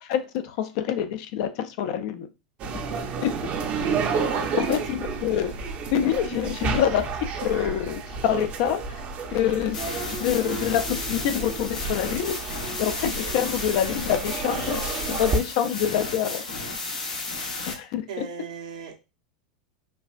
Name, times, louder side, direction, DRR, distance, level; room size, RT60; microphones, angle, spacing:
voice 1, 0.0-2.3 3.2-3.3 4.1-4.3 4.7-5.5 5.9-9.0 9.3-9.8 10.2-16.4 17.7-18.0, left 9 dB, 60° left, 9 dB, 0.5 m, -26 dB
sound 1, 2.6-15.4, right 5 dB, 40° right, 0.7 m, -31 dB
voice 2, 4.3-4.6 18.1-19.0, right 5 dB, 75° right, 2 dB, 0.9 m, -36 dB
sound 2, 9.7-17.7, left 3 dB, 80° left, 1.0 m, -33 dB
4.6 x 2.4 x 2.4 m, 0.28 s
hypercardioid pair, 90°, 4 cm